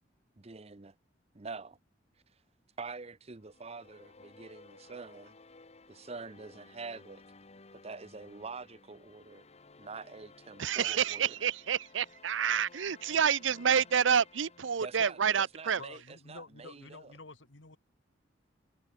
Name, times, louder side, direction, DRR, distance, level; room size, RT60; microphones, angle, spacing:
voice 1, 0.4-0.9 1.3-1.8 2.8-5.4 5.9-7.2 7.8-9.5 9.8-11.4 14.8-17.1, right 4 dB, 35° right, 0.8 m, -45 dB
sound 1, 3.4-15.8, left 3 dB, 35° left, 1.3 m, -57 dB
voice 2, 10.6-15.8, right 7 dB, 90° right, 0.7 m, -28 dB
voice 3, 15.8-17.8, left 3 dB, 85° left, 2.2 m, -49 dB
head